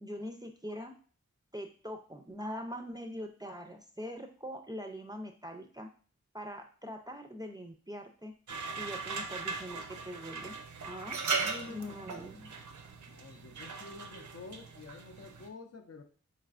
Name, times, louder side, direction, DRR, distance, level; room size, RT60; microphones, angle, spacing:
voice 1, 0.0-0.9 1.5-5.9 6.3-8.3 8.8-10.6 10.8-11.2 11.7-12.5, equal, 15° right, 3 dB, 0.4 m, -43 dB
sound 1, 8.5-15.5, right 4 dB, 75° right, 0.5 m, -39 dB
voice 2, 11.4-12.1 13.1-16.0, left 4 dB, 55° left, 5 dB, 0.6 m, -48 dB
4.0 x 3.2 x 2.5 m, 0.41 s
wide cardioid pair, 60°, 30 cm